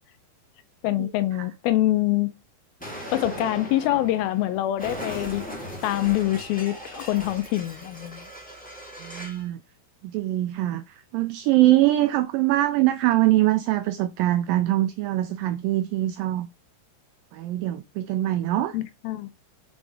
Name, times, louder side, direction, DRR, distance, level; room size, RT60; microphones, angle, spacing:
voice 1, 0.8-2.3 3.1-5.5 5.8-8.3 18.7-19.3, left 14 dB, 80° left, 2.2 m, -25 dB
Explosion, 2.8-9.5, equal, 5° left, 1.6 m, -38 dB
voice 2, 9.0-9.6 10.0-16.5 17.3-18.8, right 15 dB, 85° right, 2.0 m, -23 dB
6.0 x 5.3 x 4.6 m
omnidirectional pair, 4.5 m